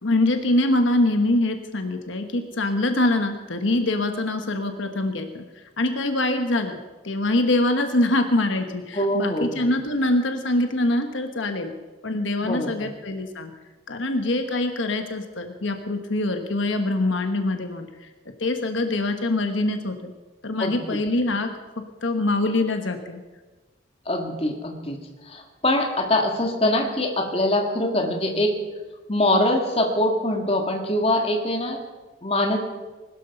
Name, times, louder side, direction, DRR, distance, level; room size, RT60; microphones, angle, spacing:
voice 1, 0.0-5.4 5.8-6.8 7.0-11.7 12.0-13.5 13.9-18.1 18.4-20.1 20.4-21.5 22.0-23.2, left 2 dB, 80° left, 6 dB, 1.2 m, -24 dB
voice 2, 8.9-9.7 12.4-12.9 20.6-20.8 24.1-28.6 29.1-31.8 32.2-32.6, left 1 dB, 30° left, 3 dB, 2.0 m, -23 dB
20.5 x 13.0 x 5.4 m, 1.3 s
head